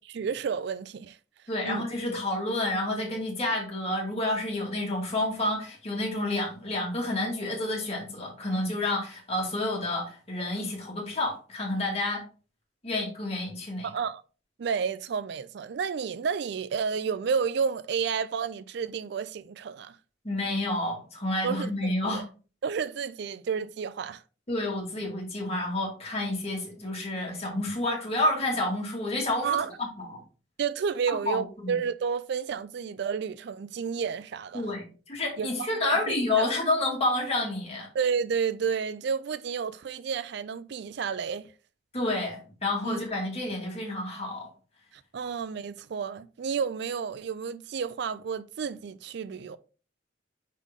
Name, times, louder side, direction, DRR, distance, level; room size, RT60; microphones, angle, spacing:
voice 1, 0.1-1.2 1.6-1.8 13.8-14.2 14.6-20.0 21.4-22.3 22.6-24.2 29.4-29.7 30.6-34.7 35.4-36.5 37.9-41.5 42.8-43.0 45.1-49.6, right 6 dB, 65° right, 0.4 m, -31 dB
voice 2, 1.5-12.2 12.8-13.9 20.2-22.2 24.5-30.2 31.1-31.8 34.5-37.9 41.9-44.5, left 2 dB, 35° left, 2.1 m, -29 dB
5.6 x 4.8 x 3.6 m
head